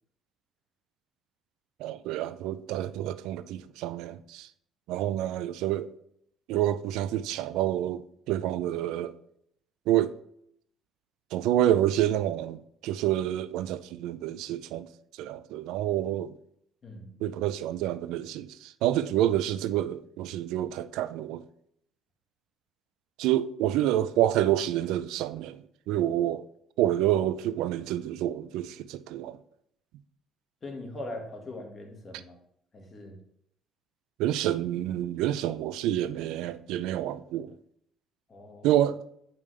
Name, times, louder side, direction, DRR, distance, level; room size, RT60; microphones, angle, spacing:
voice 1, 1.8-4.5 4.9-5.9 6.5-9.2 9.9-10.1 11.3-14.9 15.2-16.3 17.2-21.4 23.2-26.5 26.8-29.4 32.1-32.2 34.2-37.6 38.6-39.0, right 12 dB, 85° right, 0.4 m, -28 dB
voice 2, 30.6-32.4 32.7-33.2 38.3-38.7, left 2 dB, 35° left, 1.7 m, -41 dB
8.3 x 5.3 x 3.3 m
cardioid pair, 115°, 0 cm